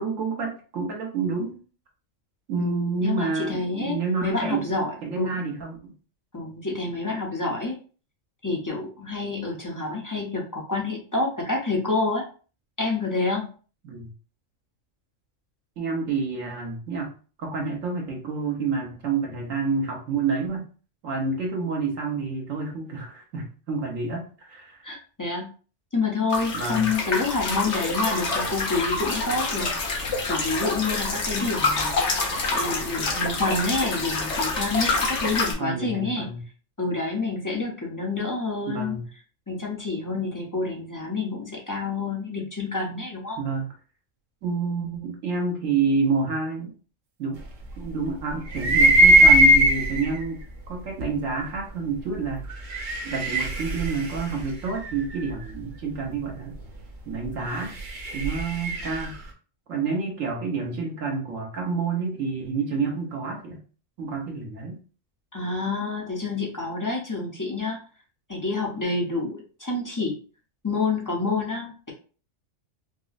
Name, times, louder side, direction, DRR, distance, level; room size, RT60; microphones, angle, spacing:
voice 1, 0.0-1.6 2.5-4.6 5.0-5.9 13.8-14.1 15.8-17.1 17.4-20.7 21.0-24.8 26.5-26.9 35.6-36.4 38.7-39.1 43.4-43.7 44.4-46.8 47.2-47.4 47.8-52.5 53.0-56.5 57.0-57.7 58.1-59.2 59.7-63.6 64.0-64.8, right 4 dB, 85° right, 0 dB, 1.4 m, -28 dB
voice 2, 2.6-5.3 6.3-7.8 8.4-12.2 12.8-13.5 24.8-25.5 25.9-32.0 32.5-36.3 36.8-39.0 39.5-43.4 65.3-67.8 68.3-70.2 70.6-71.9, left 3 dB, 20° left, -2 dB, 0.6 m, -28 dB
sound 1, 26.3-35.5, left 3 dB, 65° left, 1.2 m, -27 dB
sound 2, 48.5-50.2 51.0-51.1 52.4-55.3 57.4-59.1, right 1 dB, 45° right, 0.7 m, -19 dB
5.1 x 2.0 x 2.4 m, 0.38 s
omnidirectional pair, 1.3 m